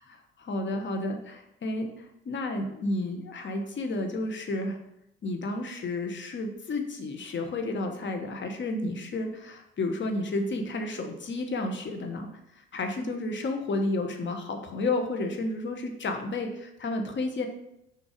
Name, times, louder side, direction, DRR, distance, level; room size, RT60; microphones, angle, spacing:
voice 1, 0.4-4.8 5.2-17.5, left 2 dB, 40° left, 5 dB, 1.3 m, -31 dB
6.3 x 4.6 x 5.1 m, 0.82 s
figure-of-eight pair, 50°, 30 cm